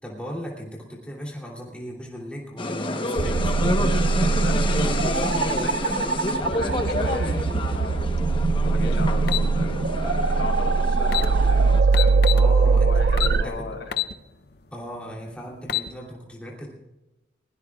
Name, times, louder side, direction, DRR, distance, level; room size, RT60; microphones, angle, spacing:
voice 1, 0.0-3.6 12.3-13.7 14.7-16.7, equal, 5° left, -3 dB, 2.9 m, -37 dB
sound 1, 2.6-11.8, left 2 dB, 25° left, 1.0 m, -29 dB
sound 2, 3.2-13.4, right 4 dB, 55° right, 0.4 m, -21 dB
voice 2, 4.3-8.1 8.6-13.9, left 2 dB, 75° left, 1 dB, 3.9 m, -36 dB
sound 3, 9.3-9.5 10.7-10.8 11.0-11.3 11.9-12.5 13.2-13.4 13.9-14.1 14.6-14.7 15.5-15.9, left 13 dB, 55° left, 0.6 m, -25 dB
22.5 x 17.0 x 2.4 m, 0.99 s
head